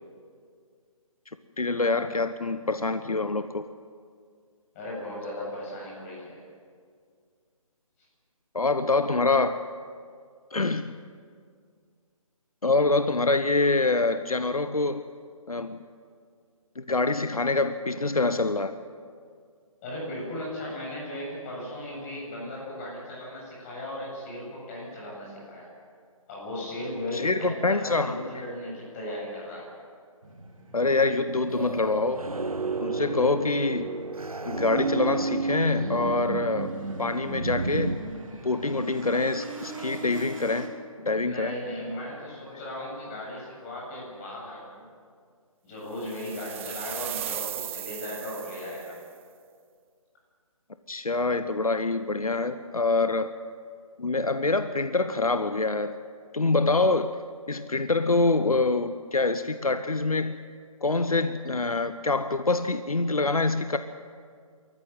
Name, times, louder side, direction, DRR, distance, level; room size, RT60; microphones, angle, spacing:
voice 1, 1.6-3.6 8.5-9.6 10.5-10.9 12.6-15.0 15.5-15.8 16.8-18.7 27.1-28.4 30.7-32.3 32.8-33.9 34.4-36.7 37.0-38.0 38.4-40.7 41.0-41.5 50.9-53.3 54.0-56.0 56.3-57.1 57.5-60.4 60.8-63.8, left 3 dB, 80° left, 11 dB, 0.9 m, -25 dB
voice 2, 4.7-6.4 19.8-25.7 26.3-29.7 41.2-44.9 45.6-49.0, left 1 dB, 25° left, -4 dB, 7.9 m, -36 dB
sound 1, 30.2-40.7, right 2 dB, 65° right, 3.6 m, -43 dB
sound 2, 31.5-38.0, right 3 dB, 80° right, 1.2 m, -31 dB
sound 3, 46.0-49.0, right 12 dB, 20° right, 0.7 m, -37 dB
25.5 x 14.5 x 7.5 m, 2.1 s
figure-of-eight pair, 145°, 18 cm